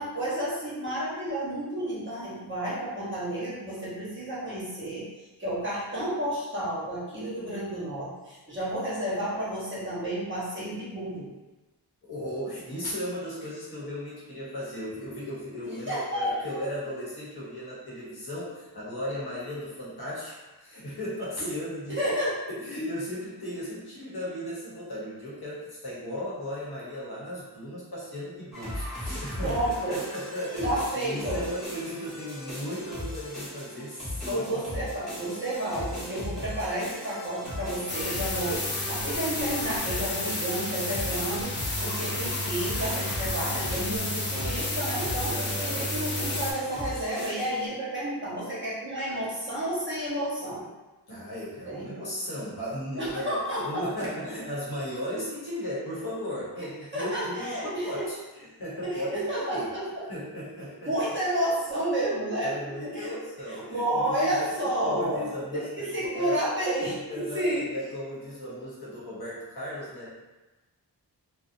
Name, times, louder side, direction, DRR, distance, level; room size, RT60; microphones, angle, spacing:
voice 1, 0.0-5.1 5.4-11.3 15.9-16.4 21.4-21.5 21.9-22.4 29.4-30.0 30.6-31.4 34.2-41.5 41.8-45.3 45.6-50.7 51.7-51.9 53.0-53.9 56.6-56.7 56.9-58.0 58.8-60.0 60.8-62.5 62.8-63.1 63.5-65.2 65.8-67.7, right 1 dB, 30° right, -9 dB, 1.0 m, -31 dB
voice 2, 12.1-22.0 22.5-29.6 29.9-34.4 45.3-45.8 51.1-59.7 60.1-61.2 62.4-64.5 64.8-66.4 67.1-70.2, equal, 65° left, -7 dB, 0.9 m, -36 dB
sound 1, 28.5-47.7, left 1 dB, ahead, 1.2 m, -38 dB
sound 2, 37.9-46.5, left 1 dB, 30° left, 0.4 m, -31 dB
2.6 x 2.1 x 2.5 m, 1.1 s
wide cardioid pair, 80°, 41 cm